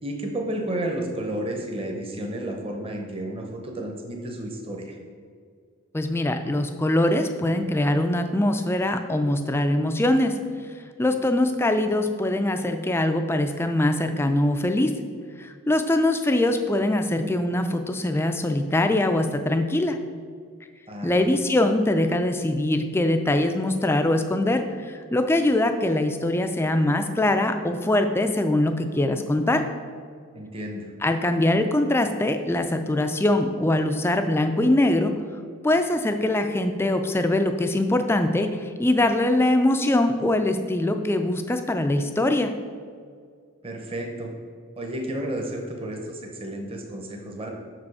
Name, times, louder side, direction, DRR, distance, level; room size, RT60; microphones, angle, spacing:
voice 1, 0.0-5.0 20.9-21.3 30.3-30.9 43.6-44.3 44.8-47.5, right 1 dB, 25° right, 2 dB, 0.8 m, -32 dB
voice 2, 5.9-10.4 11.0-14.9 15.4-20.0 21.0-29.6 31.0-35.1 35.6-42.5, left 1 dB, 10° left, 7 dB, 0.3 m, -22 dB
6.4 x 4.9 x 4.8 m, 2.1 s
head